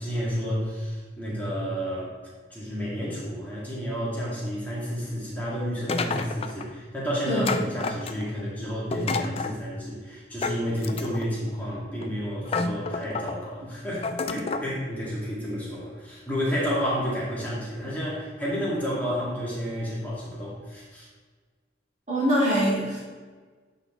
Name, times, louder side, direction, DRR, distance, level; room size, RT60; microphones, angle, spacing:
voice 1, 0.0-2.2 2.5-21.1, equal, 10° left, -7 dB, 1.9 m, -31 dB
sound 1, 5.9-6.7 7.4-8.4 8.9-9.6 10.4-11.3 12.0-12.1 12.5-13.4 14.0-14.7, left 4 dB, 30° left, 0.3 m, -30 dB
voice 2, 22.1-23.0, equal, 40° right, -7 dB, 2.0 m, -23 dB
8.6 x 4.1 x 3.6 m, 1.5 s
head